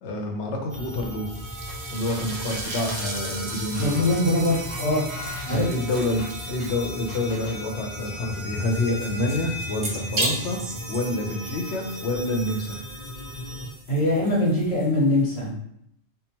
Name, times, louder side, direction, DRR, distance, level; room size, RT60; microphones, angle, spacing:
voice 1, 0.0-1.3 1.9-4.1 5.5-10.6 10.9-12.8, left 2 dB, 85° left, 2 dB, 0.9 m, -28 dB
sound 1, 0.7-13.7, left 1 dB, 10° left, 0.8 m, -36 dB
sound 2, 1.3-15.5, right 2 dB, 50° right, 0.3 m, -37 dB
sound 3, 1.7-1.8 2.0-6.7 7.1-7.6, left 1 dB, 40° left, 1.0 m, -41 dB
voice 2, 3.8-5.0 5.4-5.7 13.9-15.5, left 1 dB, 65° left, -5 dB, 1.2 m, -22 dB
2.8 x 2.0 x 2.8 m, 0.72 s
omnidirectional pair, 1.1 m